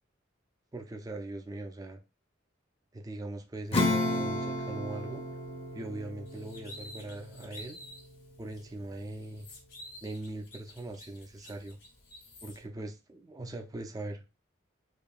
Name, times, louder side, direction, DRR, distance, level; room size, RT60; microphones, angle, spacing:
voice 1, 0.7-2.0 2.9-5.2 5.7-7.8 8.4-9.5 10.0-11.8 12.4-14.2, right 2 dB, 20° right, 0.4 m, -41 dB
Acoustic guitar / Strum, 3.7-9.7, left 2 dB, 30° left, 0.7 m, -34 dB
sound 1, 6.3-8.1 8.5-8.6 9.0-12.6, left 1 dB, 75° left, 2.3 m, -50 dB
4.8 x 2.6 x 2.4 m
head